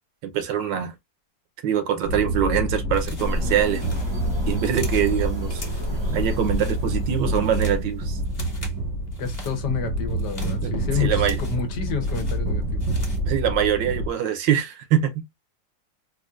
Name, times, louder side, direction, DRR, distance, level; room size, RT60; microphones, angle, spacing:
voice 1, 0.3-0.9 1.6-4.0 4.5-5.6 6.1-8.2 10.6-11.4 13.3-15.2, right 9 dB, 80° right, 1.4 m, -24 dB
sound 1, 2.0-14.1, right 1 dB, 15° right, 0.7 m, -27 dB
sound 2, 2.9-3.4 3.7-5.1 5.5-6.0 6.3-6.8 7.2-7.8 8.2-8.8 9.1-9.6 10.1-11.7 12.0-13.3, left 2 dB, 25° left, 1.2 m, -42 dB
sound 3, 3.2-8.2, left 1 dB, 45° right, 0.3 m, -33 dB
voice 2, 9.2-12.9, left 6 dB, 70° left, 1.4 m, -29 dB
4.3 x 2.5 x 2.4 m
omnidirectional pair, 2.0 m